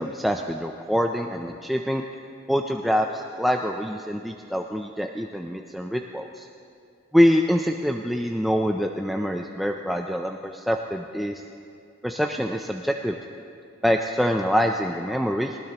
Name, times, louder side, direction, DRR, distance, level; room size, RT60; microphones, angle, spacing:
voice 1, 0.0-2.0 2.5-6.4 7.1-11.4 12.0-13.2 13.8-15.6, equal, ahead, 2 dB, 0.4 m, -25 dB
21.0 x 19.0 x 2.9 m, 2.4 s
head